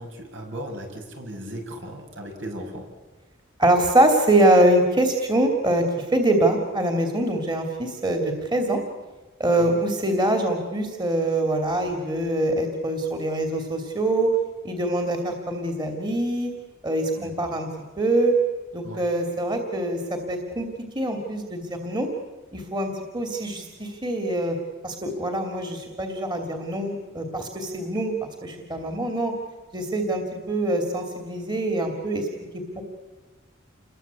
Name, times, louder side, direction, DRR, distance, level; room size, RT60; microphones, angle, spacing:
voice 1, 0.0-2.8 9.6-9.7 17.1-17.5 18.8-19.0, equal, 70° right, 2 dB, 6.1 m, -37 dB
voice 2, 3.6-8.8 9.4-14.3 14.6-16.5 16.8-17.7 18.0-18.3 18.7-20.7 20.9-22.1 22.5-24.6 24.8-28.1 28.4-29.3 29.7-32.3 32.7-32.8, right 1 dB, 20° right, 3 dB, 2.9 m, -24 dB
29.0 x 22.5 x 8.4 m, 1.2 s
head